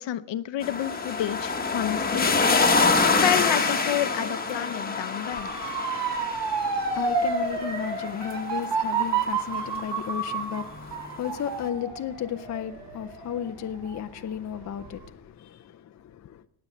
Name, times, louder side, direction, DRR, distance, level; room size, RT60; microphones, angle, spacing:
voice 1, 0.0-2.3 3.0-5.5, left 11 dB, 60° left, 0.8 m, -29 dB
sound 1, 0.6-9.7 11.0-11.1, left 4 dB, 20° left, 1.1 m, -26 dB
Motor vehicle (road) / Siren, 5.3-14.2 14.6-15.1, right 4 dB, 55° right, 4.1 m, -30 dB
voice 2, 6.5-16.4, left 9 dB, 35° left, 0.5 m, -34 dB
19.0 x 7.8 x 8.3 m
cardioid pair, 175°, 49 cm